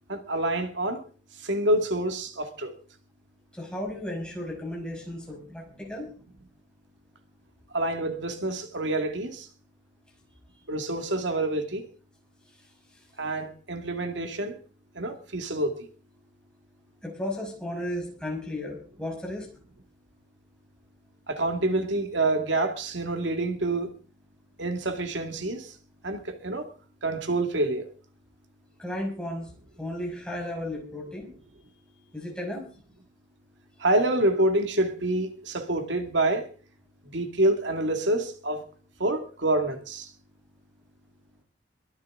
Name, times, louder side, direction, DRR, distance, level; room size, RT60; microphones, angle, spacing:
voice 1, 0.1-1.0 1.4-2.7 7.7-9.5 10.7-11.9 13.2-14.6 15.0-15.9 21.3-23.9 24.6-25.7 26.0-26.7 27.0-27.9 33.8-36.5 37.0-38.6 39.0-40.1, right 1 dB, 85° right, 2.2 m, -27 dB
voice 2, 3.5-6.1 17.0-19.5 28.8-29.5 29.8-31.3 32.1-32.6, left 1 dB, 5° left, 5.7 m, -34 dB
22.5 x 11.0 x 3.8 m
head